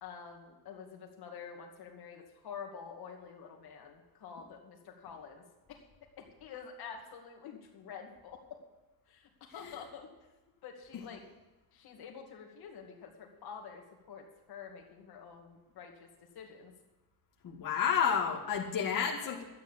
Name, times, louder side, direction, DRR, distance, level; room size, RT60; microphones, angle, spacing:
voice 1, 0.0-5.4 5.7-8.6 9.1-10.1 10.6-11.3 11.7-16.1 16.3-16.7, left 6 dB, 75° left, 2 dB, 2.3 m, -48 dB
voice 2, 17.4-19.4, left 7 dB, 55° left, -2 dB, 2.1 m, -31 dB
12.5 x 9.2 x 6.9 m, 1.1 s
cardioid pair, 155°, 38 cm